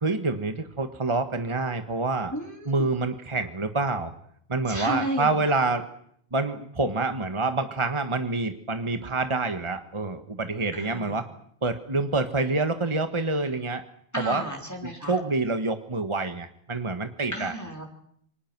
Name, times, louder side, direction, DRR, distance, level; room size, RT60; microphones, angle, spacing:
voice 1, 0.0-2.3 2.6-4.1 4.5-5.8 6.3-11.3 11.6-13.8 14.2-14.4 14.8-17.5, right 3 dB, 30° right, 8 dB, 1.6 m, -27 dB
voice 2, 2.3-2.9 4.7-5.3 10.7-11.2 14.1-15.2 17.3-17.9, equal, 15° left, 0 dB, 3.7 m, -33 dB
28.5 x 25.0 x 6.1 m, 0.67 s
omnidirectional pair, 1.0 m